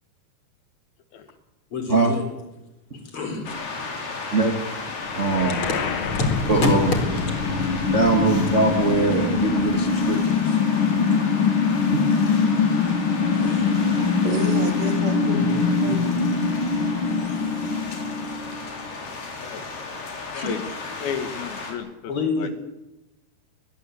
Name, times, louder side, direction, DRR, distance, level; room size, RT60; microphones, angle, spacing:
voice 1, 1.7-2.2 2.9-3.5 5.6-5.7 6.1-7.4 20.3-20.6 22.1-22.5, left 3 dB, 30° left, 5 dB, 4.7 m, -26 dB
sound 1, 3.5-21.7, left 3 dB, 55° left, 5.5 m, -34 dB
sound 2, 5.0-18.9, left 5 dB, 90° left, 1.1 m, -23 dB
voice 2, 5.2-5.6 6.5-6.9 7.9-10.6 11.9-12.0 15.4-15.5, right 3 dB, 70° right, 4 dB, 0.7 m, -22 dB
voice 3, 13.1-16.0, right 1 dB, 40° right, 4 dB, 4.4 m, -33 dB
voice 4, 21.0-22.1 22.4-22.5, left 7 dB, 70° left, 10 dB, 3.1 m, -32 dB
21.5 x 20.5 x 8.4 m, 0.99 s
omnidirectional pair, 4.8 m